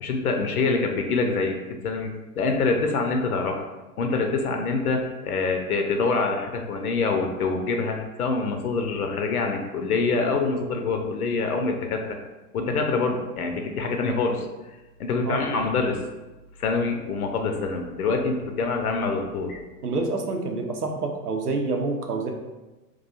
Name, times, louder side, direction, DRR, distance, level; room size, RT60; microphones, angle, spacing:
voice 1, 0.0-2.1 2.4-3.6 4.0-12.2 12.5-14.5 15.0-16.0 16.6-19.6, left 4 dB, 70° left, 3 dB, 0.6 m, -25 dB
voice 2, 19.8-22.3, right 3 dB, 85° right, 2 dB, 0.6 m, -27 dB
2.4 x 2.3 x 4.0 m, 1.1 s
figure-of-eight pair, 90°, 46 cm